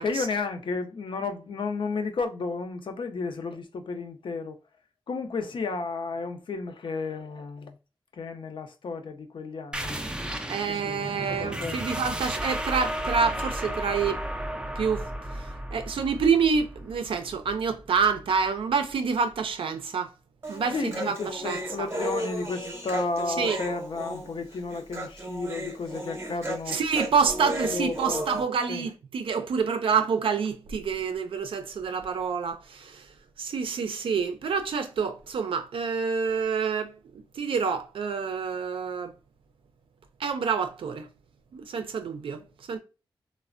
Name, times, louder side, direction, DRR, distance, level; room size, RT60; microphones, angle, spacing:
voice 1, 0.0-4.6 5.1-7.8 8.1-10.0 10.6-11.8 20.7-26.8 27.6-28.2 28.7-28.9, left 4 dB, 70° left, 0.5 m, -33 dB
sound 1, 9.7-18.9, right 1 dB, 10° right, 0.3 m, -34 dB
voice 2, 10.5-14.2 14.8-15.0 15.4-20.1 20.5-21.9 23.4-23.6 26.7-33.1 33.4-36.9 37.4-39.1 40.2-41.1 41.5-42.8, right 6 dB, 85° right, 0.4 m, -27 dB
Human voice, 20.4-28.4, right 1 dB, 30° right, 0.7 m, -34 dB
3.2 x 2.0 x 2.4 m
wide cardioid pair, 85°, 9 cm